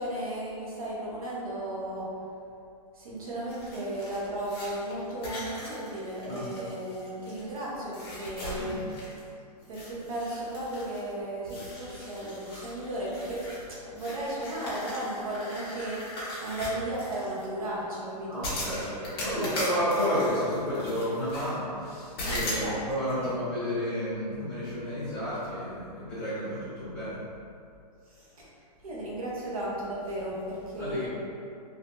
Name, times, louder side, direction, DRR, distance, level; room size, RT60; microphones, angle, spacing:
voice 1, 0.0-2.2 3.0-8.8 9.7-19.0 19.3-19.5 22.6-22.8 23.2-23.3 28.1-28.5 28.8-31.1, right 1 dB, 60° right, -6 dB, 0.8 m, -35 dB
sound 1, 3.5-7.6 7.9-9.3 9.6-11.1 11.4-17.4 18.4-21.5 22.2-22.7, left 1 dB, 35° left, 0.9 m, -39 dB
voice 2, 8.5-8.9 18.3-27.2 30.8-31.1, equal, 5° left, -18 dB, 1.0 m, -31 dB
3.5 x 2.7 x 2.5 m, 2.5 s
hypercardioid pair, 175°, 21 cm